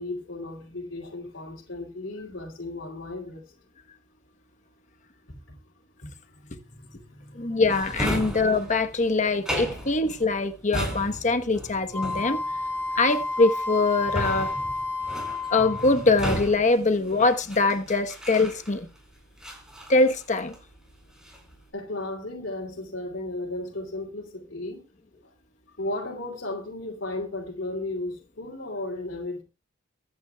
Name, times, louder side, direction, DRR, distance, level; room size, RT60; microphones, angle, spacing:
voice 1, 0.0-3.4 5.3-5.6 6.0-7.6 21.7-24.8 25.2-25.3 25.7-29.4, left 2 dB, 85° left, 2.8 m, -35 dB
voice 2, 7.3-12.4 12.9-14.5 15.5-18.9 19.9-20.6, left 3 dB, 40° left, 1.1 m, -23 dB
Drawer open or close, 7.7-19.0 19.4-20.7 21.0-21.5, equal, 5° right, 4.7 m, -35 dB
Wind instrument woodwind instrument, 11.9-16.1, left 2 dB, 15° left, 1.2 m, -30 dB
24.0 x 9.5 x 2.3 m
head